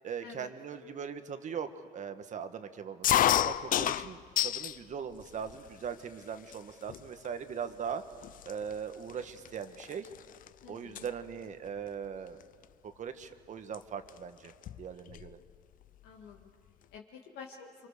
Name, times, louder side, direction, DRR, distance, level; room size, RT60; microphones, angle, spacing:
voice 1, 0.0-3.1 3.4-8.0 8.4-10.1 10.7-12.4 13.0-14.5 14.8-15.4, right 7 dB, 45° right, 9 dB, 1.4 m, -40 dB
sound 1, 3.0-4.8 5.2-5.9 6.5-6.6 6.9-7.3 7.9-8.0 8.2-10.5 10.8-11.1 12.4-12.6 13.7-13.8 14.1-14.2 14.5-15.3, left 11 dB, 55° left, 0.5 m, -30 dB
voice 2, 10.6-11.1 16.0-16.5 16.9-17.7, left 6 dB, 80° left, -1 dB, 2.2 m, -49 dB
27.0 x 24.5 x 6.8 m, 2.1 s
cardioid pair, 110°, 17 cm